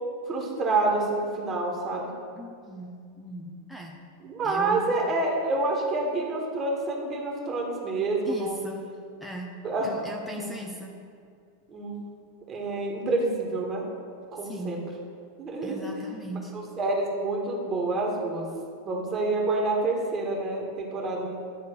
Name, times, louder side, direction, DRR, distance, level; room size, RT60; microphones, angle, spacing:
voice 1, 0.3-2.1 4.2-8.6 9.6-9.9 10.2-10.5 11.7-12.0 12.5-13.8 14.3-14.8 15.4-15.8 16.3-18.5 18.8-21.4, right 2 dB, 30° right, -1 dB, 1.8 m, -28 dB
voice 2, 2.4-4.0 4.4-4.9 8.2-8.8 9.2-9.5 9.8-10.9 14.4-14.8 15.6-16.5, right 1 dB, 5° left, 0 dB, 0.9 m, -38 dB
10.5 x 3.9 x 6.8 m, 2.2 s
figure-of-eight pair, 90°, 0 cm